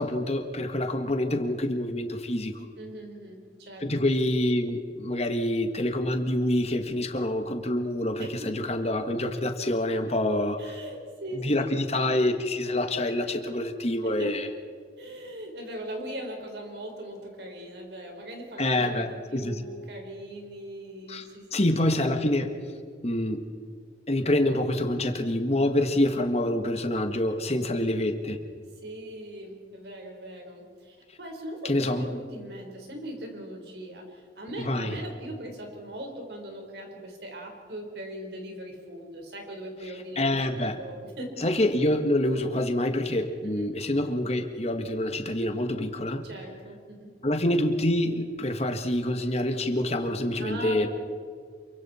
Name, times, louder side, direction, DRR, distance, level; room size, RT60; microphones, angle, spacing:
voice 1, 0.0-2.7 3.8-10.6 11.3-14.5 18.6-19.6 21.1-22.5 23.0-23.5 24.1-28.4 31.6-32.0 34.6-35.0 40.1-40.8 41.4-46.2 47.2-50.9, left 1 dB, 35° left, 6 dB, 1.7 m, -26 dB
voice 2, 2.7-3.9 8.2-8.7 10.6-12.0 14.2-14.3 15.0-21.5 27.7-28.0 28.8-41.4 43.4-43.8 46.2-47.2 50.4-50.9, right 1 dB, 65° right, 2 dB, 4.5 m, -40 dB
27.5 x 24.0 x 4.4 m, 2.2 s
head